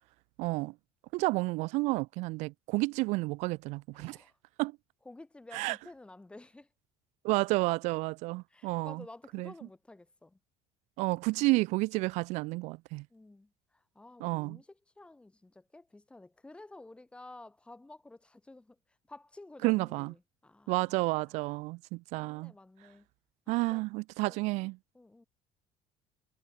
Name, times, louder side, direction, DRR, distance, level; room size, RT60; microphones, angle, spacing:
voice 1, 0.4-0.7 1.1-4.2 4.6-4.7 5.5-5.8 7.2-9.0 9.3-9.5 11.0-13.0 14.2-14.6 19.6-20.1 20.7-22.5 23.5-24.7, right 23 dB, 70° right, 0.4 m, -30 dB
voice 2, 3.9-4.4 5.0-6.7 8.5-10.4 13.1-18.8 19.1-21.4 22.1-23.1 23.5-23.8 24.3-24.5 24.9-25.2, left 2 dB, 10° left, 7.2 m, -52 dB
cardioid pair, 150°, 12 cm